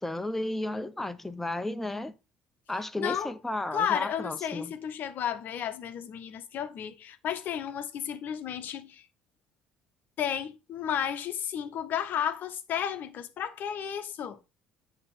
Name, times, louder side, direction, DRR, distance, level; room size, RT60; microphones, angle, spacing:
voice 1, 0.0-2.1 2.7-4.7, left 1 dB, 5° left, 0.5 m, -33 dB
voice 2, 3.0-3.3 3.7-9.1 10.2-14.4, left 9 dB, 45° left, 0.7 m, -33 dB
8.5 x 2.9 x 4.3 m
figure-of-eight pair, 55°, 4 cm